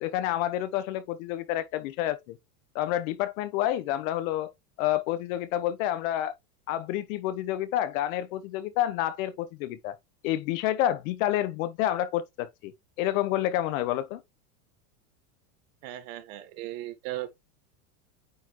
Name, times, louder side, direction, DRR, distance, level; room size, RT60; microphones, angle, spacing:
voice 1, 0.0-2.4 2.7-4.5 4.8-6.3 6.7-10.0 10.2-12.7 13.0-14.2, left 13 dB, 55° left, 1.3 m, -29 dB
voice 2, 15.8-17.3, right 14 dB, 55° right, 1.6 m, -37 dB
9.2 x 4.1 x 3.1 m
supercardioid pair, 150°, 48 cm